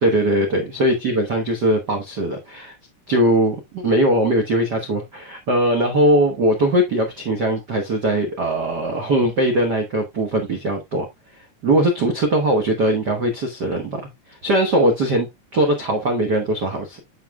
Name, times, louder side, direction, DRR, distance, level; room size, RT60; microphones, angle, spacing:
voice 1, 0.0-2.7 3.1-11.0 11.6-14.0 14.4-17.0, right 1 dB, 80° right, 0.9 m, -20 dB
8.4 x 6.6 x 2.3 m
omnidirectional pair, 3.8 m